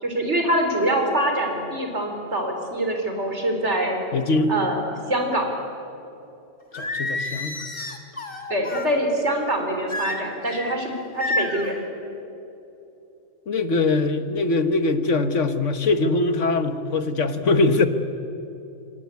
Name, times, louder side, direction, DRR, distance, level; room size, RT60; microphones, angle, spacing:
voice 1, 0.0-4.0 4.5-4.8 5.1-5.4 8.5-11.8, right 1 dB, 60° right, 3 dB, 4.6 m, -24 dB
voice 2, 4.1-4.5 6.7-7.6 13.5-17.9, left 3 dB, 70° left, 9 dB, 1.7 m, -22 dB
Singing, 6.7-8.9 9.9-10.7 11.2-11.7, left 2 dB, 45° left, 2.6 m, -29 dB
28.0 x 25.5 x 8.4 m, 2.8 s
omnidirectional pair, 1.3 m